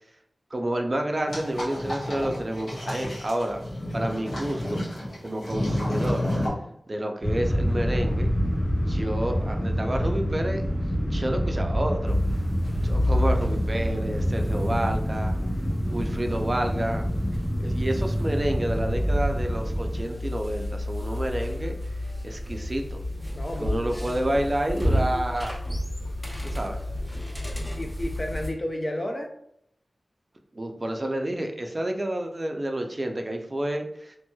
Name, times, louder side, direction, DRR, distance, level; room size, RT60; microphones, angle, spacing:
voice 1, 0.5-3.6 3.9-4.8 5.2-6.2 6.9-8.3 8.9-10.8 11.1-12.2 12.8-15.3 15.9-17.0 17.6-21.8 22.2-23.0 23.6-25.6 26.4-26.8 30.5-34.2, right 1 dB, 40° right, 4 dB, 0.4 m, -29 dB
sound 1, 1.3-6.5, left 1 dB, 90° left, 1.2 m, -30 dB
sound 2, 7.2-20.0, equal, 65° left, 1.5 m, -27 dB
sound 3, 12.0-28.5, equal, 5° left, 0.7 m, -30 dB
voice 2, 23.3-24.2 24.6-25.2 27.8-29.3, left 1 dB, 35° left, 4 dB, 0.5 m, -32 dB
3.0 x 2.9 x 2.2 m, 0.73 s
wide cardioid pair, 50°, 0 cm